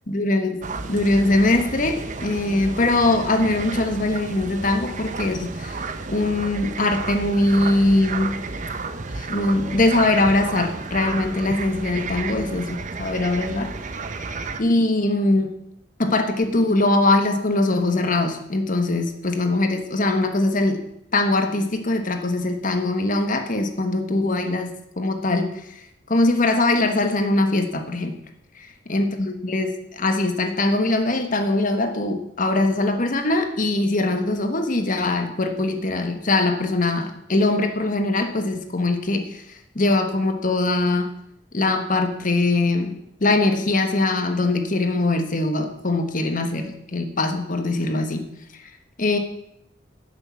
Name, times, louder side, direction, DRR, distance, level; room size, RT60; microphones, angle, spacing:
voice 1, 0.1-5.8 6.1-8.4 9.1-13.7 14.6-15.5 16.0-20.8 21.1-25.8 26.1-28.2 28.5-28.6 28.9-41.1 41.5-48.2 49.0-49.2, left 2 dB, 45° left, 6 dB, 1.3 m, -22 dB
sound 1, 0.6-14.6, right 4 dB, 45° right, 0.8 m, -32 dB
10.5 x 6.7 x 7.1 m, 0.79 s
head